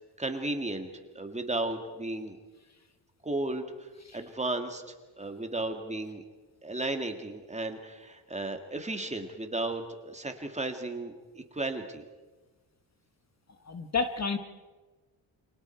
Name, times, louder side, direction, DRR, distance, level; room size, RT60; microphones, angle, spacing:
voice 1, 0.2-0.9 1.2-2.4 3.2-3.7 4.1-4.8 5.2-6.3 6.6-12.0, right 2 dB, 15° right, 5 dB, 2.0 m, -34 dB
voice 2, 13.7-14.4, left 4 dB, 35° left, 8 dB, 1.2 m, -30 dB
29.0 x 25.0 x 4.6 m, 1.3 s
wide cardioid pair, 145°, 46 cm